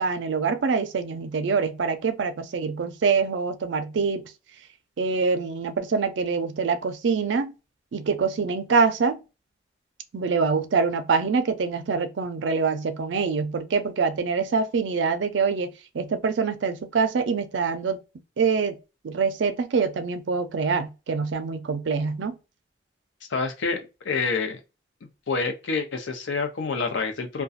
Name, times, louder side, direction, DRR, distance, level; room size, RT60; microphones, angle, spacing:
voice 1, 0.0-4.3 5.0-7.5 7.9-9.2 10.1-18.0 18.4-18.8 19.0-22.4, right 5 dB, 75° right, 0.4 m, -25 dB
voice 2, 23.3-24.6 25.3-27.4, left 4 dB, 80° left, 0.6 m, -27 dB
2.4 x 2.2 x 2.5 m
head